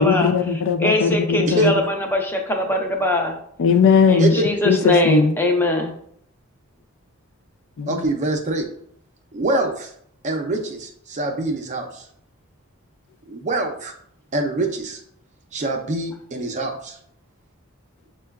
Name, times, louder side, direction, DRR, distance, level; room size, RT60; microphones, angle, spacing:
voice 1, 0.0-1.7 3.6-4.3 4.7-5.3 7.8-8.1, left 5 dB, 65° left, 7 dB, 0.3 m, -18 dB
voice 2, 0.8-3.4 4.1-5.9, left 1 dB, 10° left, 2 dB, 0.5 m, -21 dB
voice 3, 7.9-8.7 9.3-9.9 10.2-12.0 13.3-13.9 14.3-15.0 15.5-17.0, right 2 dB, 35° right, 3 dB, 0.5 m, -24 dB
6.4 x 2.2 x 2.3 m, 0.66 s
head